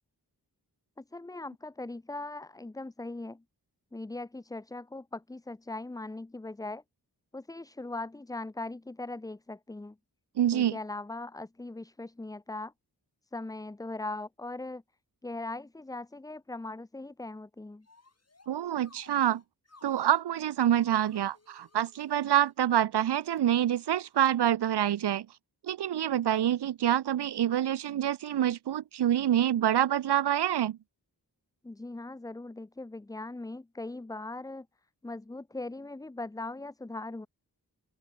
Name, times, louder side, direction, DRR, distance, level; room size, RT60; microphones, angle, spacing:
voice 1, 1.0-3.4 3.9-6.8 7.3-10.0 10.5-12.7 13.3-14.8 15.2-17.9 31.6-34.7 35.0-37.3, left 2 dB, 10° left, 0.4 m, -40 dB
voice 2, 10.4-10.8 18.5-19.4 19.8-25.3 25.6-30.8, right 11 dB, 85° right, 0.5 m, -26 dB
sound 1, 17.8-18.5 18.8-20.2 20.7-22.5 23.2-23.4 24.2-24.3, left 3 dB, 40° left, 4.3 m, -60 dB
open air
wide cardioid pair, 85°, 39 cm